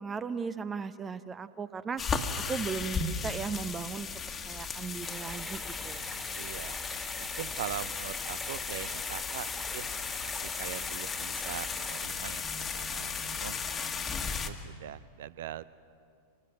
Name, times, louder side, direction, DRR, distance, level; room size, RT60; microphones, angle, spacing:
voice 1, 0.0-2.0 2.4-4.1 4.5-6.0, right 5 dB, 20° right, 14 dB, 0.8 m, -36 dB
sound 1, 2.0-14.5, left 5 dB, 20° left, 1.6 m, -36 dB
sound 2, 5.0-12.1, equal, ahead, 2.1 m, -43 dB
voice 2, 6.4-6.8 7.2-9.9 10.2-15.7, right 11 dB, 55° right, 18 dB, 0.6 m, -42 dB
26.0 x 20.0 x 7.6 m, 2.5 s
figure-of-eight pair, 90°, 0 cm